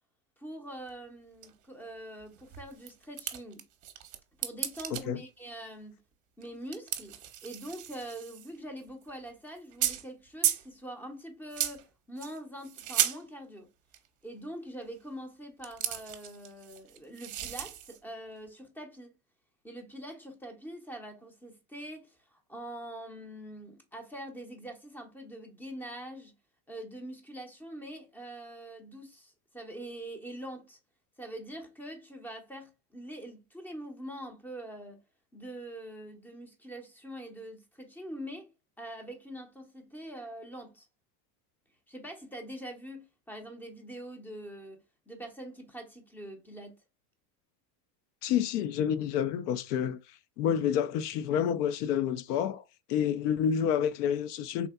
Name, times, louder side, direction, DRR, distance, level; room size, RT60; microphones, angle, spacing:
voice 1, 0.4-3.6 4.4-6.0 6.4-7.2 7.4-13.7 14.2-19.1 19.6-26.3 26.7-30.8 31.2-35.0 35.3-38.5 38.8-40.9 41.9-44.8 45.1-46.8, right 1 dB, 5° left, 0.5 m, -44 dB
sound 1, 0.9-1.0 1.4-1.5 1.8-1.9 2.2-4.2 4.4-5.0 6.4-6.5 6.7-8.6 8.9-9.1 9.6-10.1 10.4-10.7 11.5-11.8 12.2-13.2 13.9-14.1 15.6-18.0, right 12 dB, 40° right, 0.7 m, -34 dB
voice 2, 4.9-5.2 48.2-50.0 50.4-52.6 52.9-54.7, left 9 dB, 80° left, 0.5 m, -29 dB
3.6 x 2.6 x 2.3 m
supercardioid pair, 110°, 46 cm